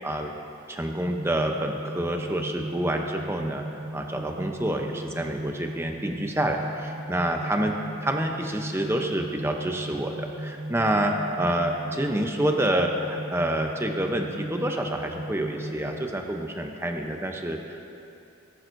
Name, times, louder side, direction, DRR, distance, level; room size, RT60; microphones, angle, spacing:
voice 1, 0.7-3.6 3.9-7.7 8.0-17.8, right 1 dB, 10° right, 3 dB, 0.7 m, -28 dB
sound 1, 1.0-16.1, right 1 dB, 60° right, 0.7 m, -37 dB
18.5 x 10.5 x 2.7 m, 2.7 s
head